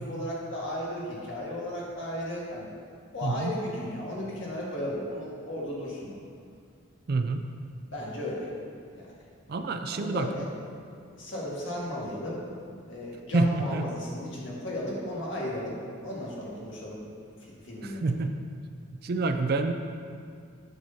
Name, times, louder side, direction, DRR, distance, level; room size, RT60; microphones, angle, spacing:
voice 1, 0.0-2.7 3.1-6.2 7.9-8.5 9.9-10.5 11.0-12.4 12.9-17.0 17.4-18.1, left 1 dB, 60° left, -5 dB, 1.6 m, -35 dB
voice 2, 3.2-3.5 7.1-7.5 9.5-10.3 13.3-13.8 17.8-18.3 19.0-19.7, right 3 dB, 45° right, 6 dB, 0.4 m, -27 dB
9.1 x 6.2 x 2.7 m, 2.2 s
head